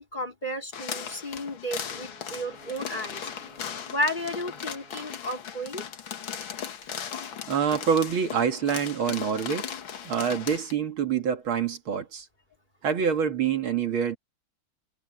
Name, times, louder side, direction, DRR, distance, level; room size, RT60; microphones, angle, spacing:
voice 1, 0.0-3.2 3.9-5.8, equal, 20° left, 3.9 m, -33 dB
sound 1, 0.7-10.7, left 8 dB, 70° left, 2.2 m, -37 dB
Wind instrument woodwind instrument, 1.8-5.5, right 3 dB, 50° right, 6.2 m, -54 dB
voice 2, 7.5-9.7 10.0-12.3 12.8-14.2, right 7 dB, 75° right, 2.7 m, -26 dB
omnidirectional pair, 2.3 m